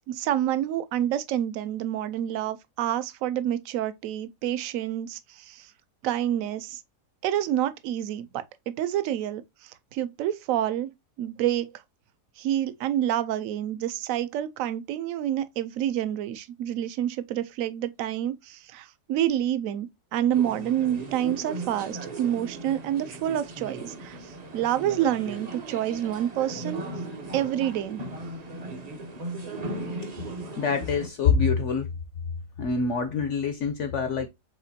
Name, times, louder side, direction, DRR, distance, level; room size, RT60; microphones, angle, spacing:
voice 1, 0.1-5.7 6.0-6.8 7.2-10.9 11.2-11.8 12.4-26.8 27.3-28.0, right 11 dB, 70° right, 0.9 m, -28 dB
sound 1, 20.3-31.1, right 2 dB, 45° right, 0.5 m, -37 dB
voice 2, 30.6-31.9 32.6-34.3, left 5 dB, 65° left, 0.7 m, -25 dB
4.9 x 3.7 x 2.6 m
omnidirectional pair, 1.7 m